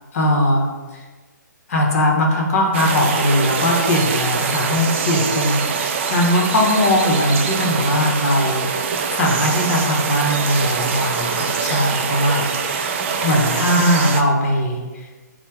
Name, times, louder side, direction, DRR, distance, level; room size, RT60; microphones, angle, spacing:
voice 1, 0.1-0.6 0.9-1.0 1.7-12.5 13.2-15.3, left 1 dB, 45° left, 0 dB, 1.0 m, -19 dB
sound 1, 2.7-14.2, right 5 dB, 40° right, 0.4 m, -23 dB
4.3 x 2.2 x 4.5 m, 1.3 s
figure-of-eight pair, 130°, 10 cm